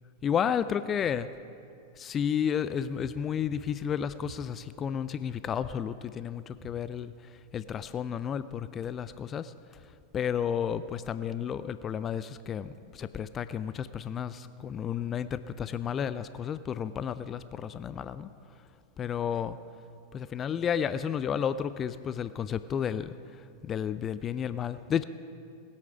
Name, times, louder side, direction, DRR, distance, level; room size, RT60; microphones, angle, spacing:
voice 1, 0.2-1.3 2.0-7.1 7.5-9.5 10.1-18.3 19.0-19.6 20.1-23.1 23.6-25.0, left 8 dB, 25° left, 14 dB, 0.3 m, -32 dB
sound 1, 3.0-3.2 3.4-3.7 4.2-4.4 6.5-6.8, equal, 15° right, 1.7 m, -49 dB
19.5 x 8.5 x 5.0 m, 2.4 s
figure-of-eight pair, 90°, 0 cm